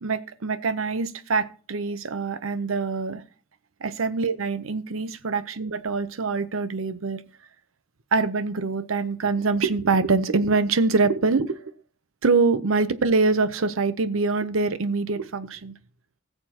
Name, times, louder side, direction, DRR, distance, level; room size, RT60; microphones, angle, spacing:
voice 1, 0.0-3.2 3.8-7.2 8.1-11.7 12.2-15.7, right 4 dB, 90° right, 13 dB, 0.7 m, -24 dB
19.5 x 6.8 x 2.9 m, 0.40 s
head